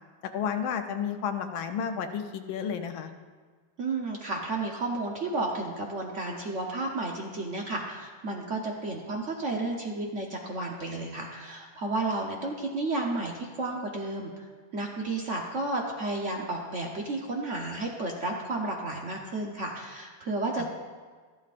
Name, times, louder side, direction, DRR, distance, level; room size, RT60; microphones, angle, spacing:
voice 1, 0.3-3.1 20.6-20.7, left 7 dB, 85° left, 7 dB, 1.5 m, -31 dB
voice 2, 3.8-20.7, right 2 dB, 50° right, 0 dB, 1.0 m, -32 dB
14.0 x 12.0 x 2.5 m, 1.5 s
omnidirectional pair, 2.2 m